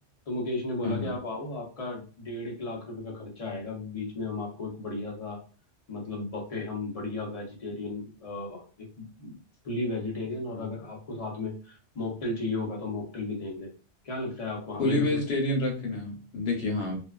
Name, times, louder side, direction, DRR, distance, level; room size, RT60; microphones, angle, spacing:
voice 1, 0.3-5.4 5.9-9.3 9.6-13.7 14.0-15.2, left 2 dB, 35° left, -2 dB, 0.7 m, -34 dB
voice 2, 0.8-1.2 10.5-10.7 14.8-17.0, left 2 dB, 60° left, 1 dB, 1.1 m, -28 dB
2.6 x 2.3 x 2.3 m, 0.36 s
omnidirectional pair, 1.3 m